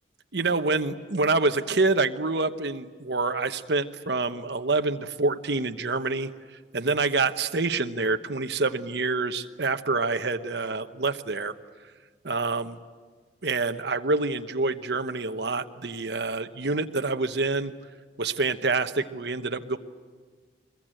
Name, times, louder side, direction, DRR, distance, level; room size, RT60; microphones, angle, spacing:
voice 1, 0.3-6.3 6.7-11.5 12.2-12.8 13.4-17.7 18.2-19.8, right 3 dB, 65° right, 8 dB, 1.1 m, -27 dB
24.0 x 21.5 x 9.0 m, 1.5 s
head